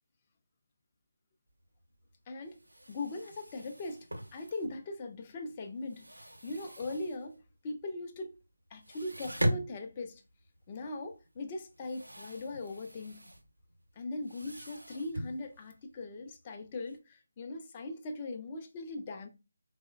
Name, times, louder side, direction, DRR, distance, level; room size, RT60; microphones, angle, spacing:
sound 1, 1.7-1.8 2.1-2.2 2.4-5.1 5.4-7.5 7.8-7.9 8.3-8.4 8.7-17.0, equal, 80° right, 0.6 m, -40 dB
voice 1, 2.3-2.6 2.9-8.4 8.7-10.2 10.7-13.3 14.0-19.3, left 2 dB, 25° left, 0.4 m, -40 dB
3.6 x 2.0 x 2.3 m
figure-of-eight pair, 160°, 0 cm